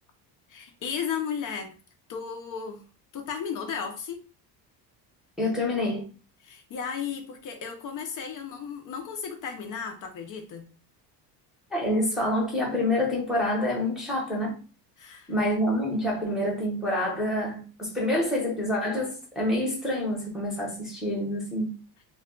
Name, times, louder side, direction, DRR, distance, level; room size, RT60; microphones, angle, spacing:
voice 1, 0.5-1.7 2.1-2.8 3.1-4.2 6.4-10.7 15.0-15.3, left 7 dB, 45° left, 0.6 m, -34 dB
voice 2, 5.4-6.0 11.7-14.6 15.3-21.8, left 1 dB, ahead, 0.9 m, -27 dB
2.3 x 2.3 x 3.7 m
cardioid pair, 140°, 43 cm